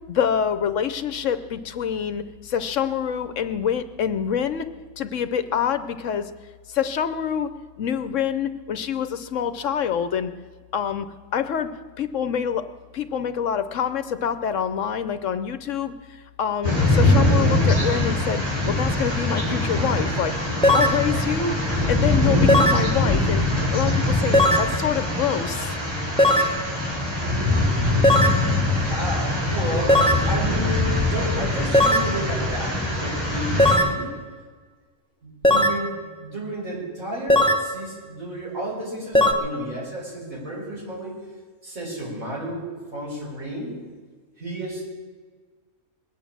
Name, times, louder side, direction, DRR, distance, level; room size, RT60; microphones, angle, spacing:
voice 1, 0.1-4.7 5.0-6.3 6.7-7.5 7.8-10.3 10.7-11.1 11.3-11.7 12.0-12.7 12.9-21.6 21.9-23.4 23.7-25.8, left 8 dB, 65° left, 11 dB, 1.0 m, -26 dB
sound 1, 16.6-33.8, left 2 dB, 25° right, 5.5 m, -23 dB
sound 2, 20.6-21.0 22.5-22.9 24.3-24.7 26.2-26.6 28.0-28.4 29.9-30.3 31.7-32.1 33.6-34.0 35.4-35.8 37.3-37.7 39.2-39.3, left 1 dB, 5° left, 0.9 m, -17 dB
voice 2, 27.2-28.1 28.4-34.1 35.2-41.1 41.6-43.7 44.4-44.8, right 1 dB, 70° right, -5 dB, 6.1 m, -32 dB
21.0 x 9.2 x 7.3 m, 1.5 s
omnidirectional pair, 1.5 m